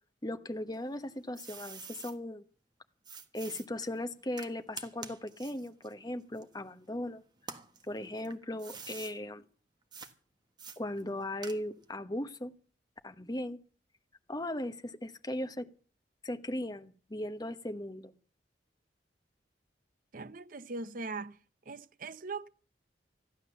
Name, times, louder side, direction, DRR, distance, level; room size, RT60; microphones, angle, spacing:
voice 1, 0.2-2.4 3.3-7.2 7.9-9.4 10.8-12.5 13.0-13.6 14.3-15.7 16.2-18.1, left 1 dB, 20° left, 1.1 m, -38 dB
sound 1, 0.7-2.2 3.0-7.0 7.4-9.2 9.9-10.1 10.6-11.9, right 5 dB, 25° right, 1.4 m, -48 dB
voice 2, 20.1-21.4 21.7-22.5, right 3 dB, 50° right, 0.7 m, -40 dB
15.0 x 11.5 x 7.0 m
head